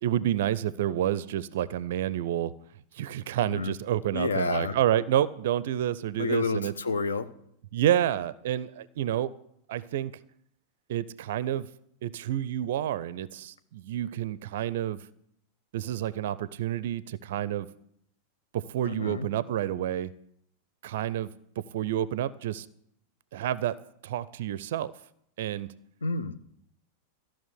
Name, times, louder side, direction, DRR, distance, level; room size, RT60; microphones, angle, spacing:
voice 1, 0.0-2.5 2.9-6.7 7.7-9.3 9.7-10.1 10.9-11.7 12.0-15.0 15.7-17.7 18.5-20.1 20.8-21.3 21.6-22.7 23.3-23.8 24.0-24.9 25.4-25.7, right 11 dB, 55° right, 19 dB, 0.4 m, -29 dB
voice 2, 3.4-3.7 4.1-4.7 6.2-7.3 18.8-19.3 26.0-26.4, left 4 dB, 70° left, 12 dB, 0.8 m, -29 dB
14.0 x 6.0 x 9.8 m, 0.72 s
figure-of-eight pair, 90°, 0 cm